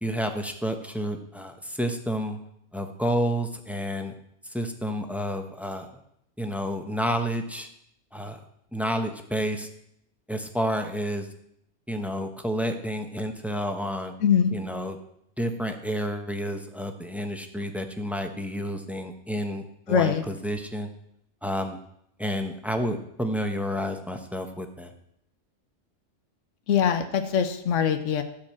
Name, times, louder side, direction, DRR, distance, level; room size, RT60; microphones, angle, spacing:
voice 1, 0.0-2.4 2.7-4.1 4.4-6.0 6.4-7.7 8.1-8.4 8.7-9.7 10.3-11.3 11.9-14.1 14.5-15.0 15.4-20.9 21.4-21.8 22.2-24.9, equal, ahead, 5 dB, 0.9 m, -30 dB
voice 2, 14.2-14.5 19.9-20.2 26.7-28.2, left 8 dB, 85° left, 9 dB, 1.1 m, -22 dB
12.5 x 5.0 x 7.5 m, 0.74 s
omnidirectional pair, 1.3 m